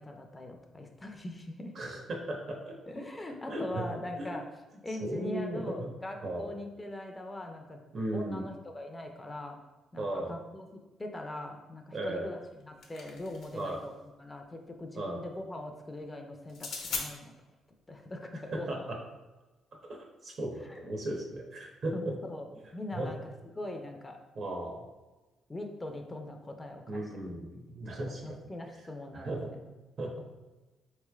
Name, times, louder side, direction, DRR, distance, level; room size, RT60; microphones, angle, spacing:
voice 1, 0.0-1.7 2.9-4.5 4.8-7.8 8.1-9.6 9.9-10.7 11.0-13.9 14.2-17.3 17.9-18.9 20.6-20.9 21.9-22.5 22.7-23.2 23.6-24.2 25.5-27.4 28.2-29.4, left 1 dB, 20° left, 3 dB, 0.4 m, -41 dB
voice 2, 1.7-2.7 3.5-3.8 4.2-4.3 5.0-5.9 6.2-6.5 7.9-8.4 10.0-10.3 11.9-12.3 13.5-13.8 14.9-15.2 18.4-19.0 19.8-22.1 22.5-22.6 22.9-23.1 24.3-24.8 26.9-28.4 29.1-29.5 30.0-30.2, right 1 dB, 55° right, 0 dB, 0.8 m, -36 dB
sound 1, 12.4-13.7 16.5-17.1, left 4 dB, 75° left, 0.7 m, -38 dB
4.2 x 3.1 x 2.3 m, 1.2 s
cardioid pair, 90°, 0 cm